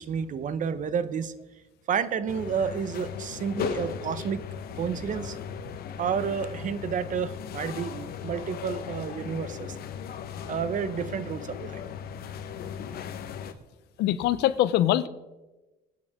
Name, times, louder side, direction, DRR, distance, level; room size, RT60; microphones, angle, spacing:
voice 1, 0.0-1.3 1.9-4.4 4.8-5.4 6.0-9.7 10.5-11.8, right 7 dB, 50° right, 14 dB, 1.0 m, -30 dB
sound 1, 2.3-13.5, left 8 dB, 65° left, 1.3 m, -37 dB
voice 2, 14.0-15.1, left 13 dB, 85° left, 15 dB, 0.8 m, -23 dB
26.5 x 9.4 x 3.7 m, 1.1 s
cardioid pair, 110°, 17 cm